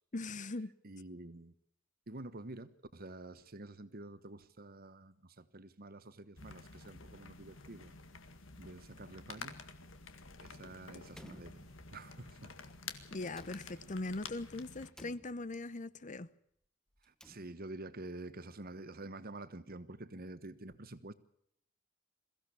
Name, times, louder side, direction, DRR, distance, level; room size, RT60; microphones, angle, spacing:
voice 1, 0.1-0.7 13.1-16.3, left 2 dB, 40° left, 0.8 m, -40 dB
voice 2, 0.8-1.5 2.1-7.9 8.6-9.5 10.4-11.6 11.9-12.5 17.0-21.1, right 2 dB, 50° right, 1.3 m, -48 dB
sound 1, 6.4-14.9, left 4 dB, 75° left, 1.9 m, -50 dB
Slam, 11.1-12.2 13.3-14.2 14.9-15.8 16.9-17.9, equal, 5° left, 0.9 m, -58 dB
22.5 x 16.0 x 8.4 m
head